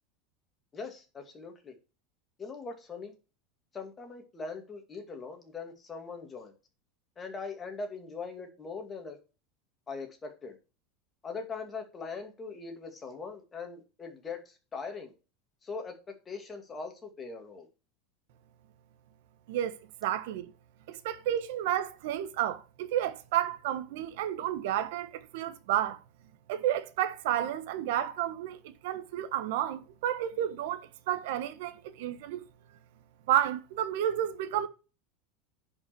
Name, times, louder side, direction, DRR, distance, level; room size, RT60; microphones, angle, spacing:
voice 1, 0.7-1.7 2.4-3.1 3.7-6.5 7.2-9.2 9.9-10.6 11.2-15.1 15.6-15.9 16.3-17.7, left 4 dB, 15° left, 2.5 m, -41 dB
voice 2, 20.0-20.5 20.9-26.0 26.5-32.4 33.3-34.7, right 11 dB, 70° right, 1.1 m, -31 dB
10.5 x 5.4 x 4.6 m
supercardioid pair, 160°, 0 cm